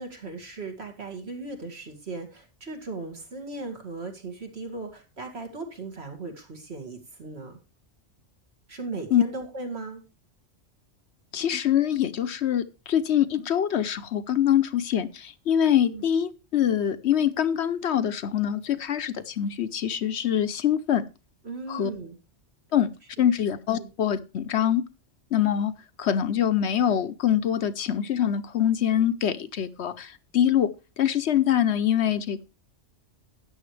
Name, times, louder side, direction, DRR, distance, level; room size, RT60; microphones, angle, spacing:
voice 1, 0.0-7.6 8.7-10.0 15.8-16.0 21.4-22.2 23.2-23.3 23.7-23.9, right 3 dB, 60° right, 3 dB, 2.5 m, -37 dB
voice 2, 11.3-21.1 21.7-21.9 22.7-24.8 25.3-25.7 26.0-30.7 31.0-32.4, left 10 dB, 65° left, 12 dB, 1.0 m, -24 dB
13.0 x 9.6 x 3.2 m, 0.30 s
omnidirectional pair, 1.2 m